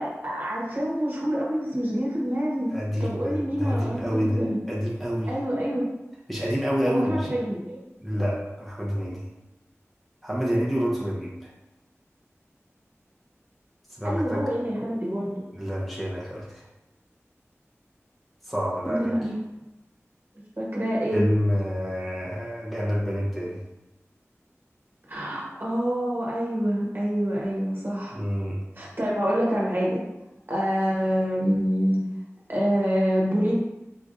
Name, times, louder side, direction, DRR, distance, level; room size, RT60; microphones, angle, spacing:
voice 1, 0.0-2.7 3.0-4.6 5.3-5.9 6.8-7.8 14.0-15.4 18.8-19.3 20.6-21.3 25.1-28.2 28.8-30.0 30.5-32.0 32.5-33.6, equal, 45° right, -5 dB, 1.3 m, -26 dB
voice 2, 2.7-4.4 4.7-5.3 6.3-7.3 8.0-9.3 10.2-11.5 13.9-14.4 15.5-16.7 18.4-19.1 21.1-23.6 28.1-28.6, equal, ahead, -6 dB, 1.0 m, -27 dB
4.7 x 3.4 x 2.7 m, 0.96 s
wide cardioid pair, 50°, 5 cm